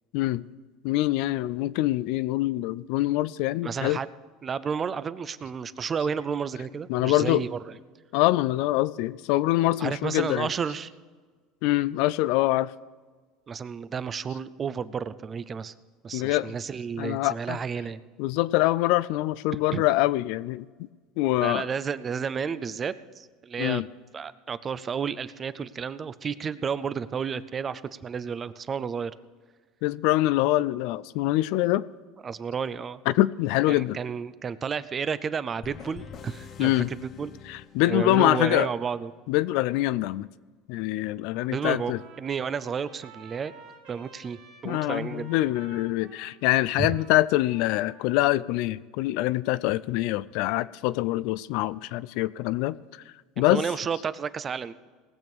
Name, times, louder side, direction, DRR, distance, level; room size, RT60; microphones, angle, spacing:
voice 1, 0.1-0.4 0.8-4.0 6.9-7.4 8.1-10.5 11.6-12.7 16.1-16.5 17.0-17.6 18.2-20.7 21.2-21.7 23.6-23.9 29.8-31.8 33.0-34.0 36.6-36.9 37.4-38.7 39.3-40.3 40.7-42.0 44.6-52.8 53.4-53.7, left 16 dB, 70° left, 18 dB, 0.4 m, -24 dB
voice 2, 3.6-4.1 4.4-7.7 9.8-10.9 13.5-15.7 16.0-18.0 19.7-19.8 21.4-23.8 24.1-29.1 32.2-33.0 33.7-37.3 37.9-39.1 41.5-43.5 43.9-44.4 44.6-45.3 46.8-46.9 53.4-54.7, right 6 dB, 30° right, 15 dB, 0.5 m, -31 dB
sound 1, 35.6-38.4, left 7 dB, 40° left, 0.7 m, -46 dB
Trumpet, 41.3-48.2, right 5 dB, 85° right, 2.7 m, -52 dB
19.0 x 7.0 x 6.1 m, 1.4 s
supercardioid pair, 120°, 0 cm